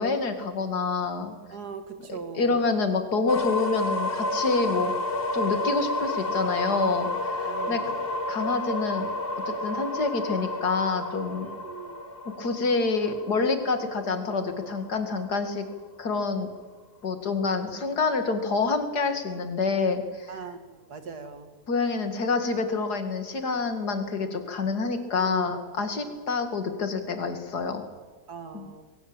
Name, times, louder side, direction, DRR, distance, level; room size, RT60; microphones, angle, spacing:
voice 1, 0.0-1.3 2.1-4.9 5.3-8.0 8.3-9.1 9.6-11.5 12.4-15.6 16.0-16.5 17.0-20.4 21.7-27.8 28.5-28.7, left 4 dB, 90° left, 7 dB, 2.7 m, -27 dB
voice 2, 1.5-2.5 7.4-8.0 11.4-12.0 20.3-21.5 25.2-25.5 26.0-26.2 28.3-28.8, right 6 dB, 80° right, 8 dB, 2.4 m, -40 dB
sound 1, 3.3-15.1, left 1 dB, 35° left, 1.9 m, -31 dB
22.0 x 17.0 x 8.8 m, 1.4 s
omnidirectional pair, 1.7 m